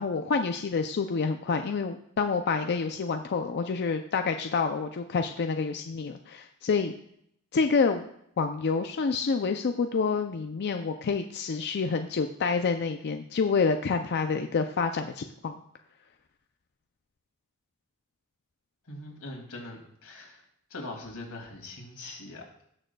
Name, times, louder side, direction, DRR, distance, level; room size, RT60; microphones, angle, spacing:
voice 1, 0.0-6.9 7.5-8.0 8.4-15.6, left 5 dB, 50° left, 6 dB, 0.4 m, -28 dB
voice 2, 18.9-20.4 20.7-22.7, left 2 dB, 90° left, 0 dB, 2.5 m, -42 dB
19.0 x 6.4 x 2.3 m, 0.70 s
head